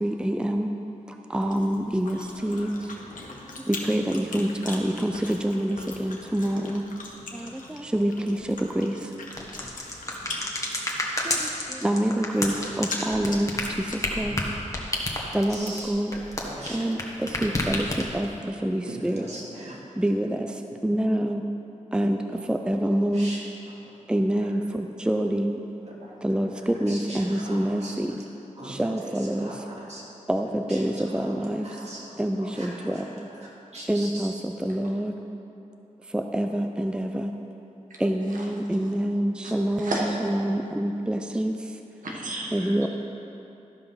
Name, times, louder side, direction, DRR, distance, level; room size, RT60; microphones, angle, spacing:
voice 1, 0.0-0.7 1.3-2.7 3.9-5.1 5.4-6.8 7.9-8.4 8.8-8.9 11.8-13.5 14.2-14.3 15.3-16.1 16.7-17.0 17.4-17.9 18.1-18.3 18.6-19.2 20.0-20.3 20.8-21.4 21.9-22.2 22.5-23.3 24.1-24.6 25.1-25.5 26.2-26.5 26.8-28.1 28.8-29.4 30.3-31.6 32.2-32.5 33.9-34.3 34.7-35.1 36.3-37.3 38.0-39.9 40.3-41.5 42.5-42.9, right 1 dB, 5° right, 5 dB, 0.5 m, -25 dB
Chewing mastication, 1.3-14.2, left 2 dB, 80° left, 1.2 m, -41 dB
sound 1, 9.3-17.0 17.3-18.3, left 1 dB, 25° left, 1.4 m, -29 dB
voice 2, 15.5-15.9 16.4-16.9 18.8-19.8 23.1-23.4 24.4-24.6 25.9-26.0 26.5-27.9 28.6-30.0 30.7-32.1 32.4-34.3, right 1 dB, 55° right, -5 dB, 2.5 m, -40 dB
voice 3, 16.1-16.5 26.0-26.2 34.8-34.9 38.3-38.5 38.8-38.9 39.4-40.3 42.0-42.9, right 1 dB, 90° right, -3 dB, 1.4 m, -34 dB
12.5 x 5.4 x 5.7 m, 2.8 s
wide cardioid pair, 70°, 13 cm